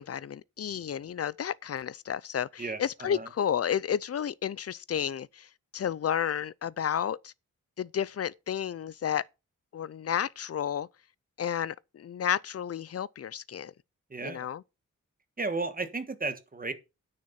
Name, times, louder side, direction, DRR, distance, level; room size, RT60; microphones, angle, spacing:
voice 1, 0.0-5.5 5.7-7.3 7.8-9.2 9.7-10.9 11.4-13.7 14.2-14.6, left 9 dB, 50° left, 0.5 m, -31 dB
voice 2, 2.6-3.3 14.1-14.5 15.4-16.7, right 3 dB, 30° right, 1.5 m, -34 dB
9.8 x 6.6 x 5.8 m
wide cardioid pair, 150°, 31 cm